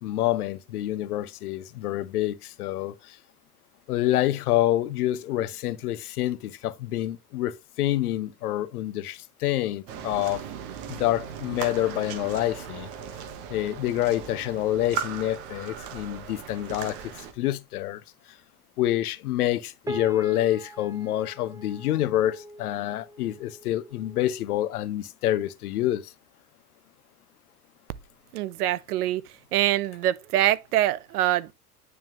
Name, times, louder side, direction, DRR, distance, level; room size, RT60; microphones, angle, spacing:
voice 1, 0.0-3.2 3.9-10.4 10.9-12.9 13.5-18.0 18.8-26.1, left 14 dB, 75° left, 0.8 m, -27 dB
sound 1, 9.9-17.3, right 8 dB, 50° right, 1.3 m, -37 dB
sound 2, 19.8-24.3, equal, 5° right, 0.9 m, -42 dB
voice 2, 28.3-29.2 29.5-31.5, right 14 dB, 75° right, 0.6 m, -24 dB
9.4 x 3.6 x 2.9 m
hypercardioid pair, 80°, 46 cm